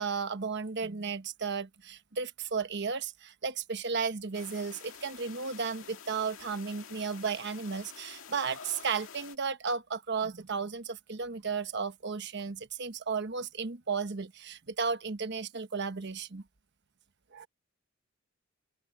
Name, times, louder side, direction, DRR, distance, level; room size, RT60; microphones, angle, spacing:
voice 1, 0.0-16.4 17.3-17.5, right 5 dB, 60° right, 1.1 m, -34 dB
sound 1, 4.3-9.4, left 7 dB, 85° left, 2.0 m, -49 dB
open air
head